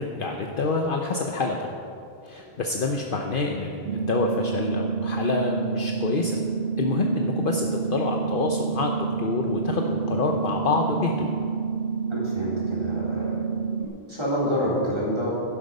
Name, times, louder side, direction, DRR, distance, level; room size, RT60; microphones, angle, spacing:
voice 1, 0.0-1.7 2.2-6.4 6.8-11.3, left 3 dB, 60° left, 2 dB, 0.9 m, -27 dB
sound 1, 3.9-13.9, right 6 dB, 75° right, 0.9 m, -28 dB
voice 2, 12.1-13.4 13.8-15.3, equal, 25° right, -6 dB, 3.6 m, -28 dB
11.5 x 11.0 x 5.3 m, 2.5 s
omnidirectional pair, 1.1 m